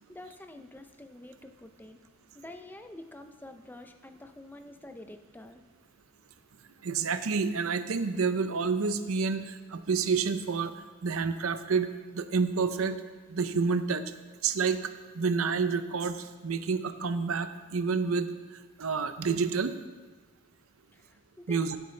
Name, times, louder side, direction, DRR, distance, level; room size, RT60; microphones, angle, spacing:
voice 1, 0.1-2.0 2.3-5.6 20.9-21.8, left 1 dB, 10° left, 7 dB, 0.4 m, -47 dB
voice 2, 6.8-10.7 11.0-11.9 12.1-13.0 13.3-14.0 14.4-14.8 15.1-18.3 18.8-19.7 21.5-21.8, right 5 dB, 75° right, 11 dB, 0.6 m, -28 dB
15.0 x 7.7 x 3.3 m, 1.3 s
head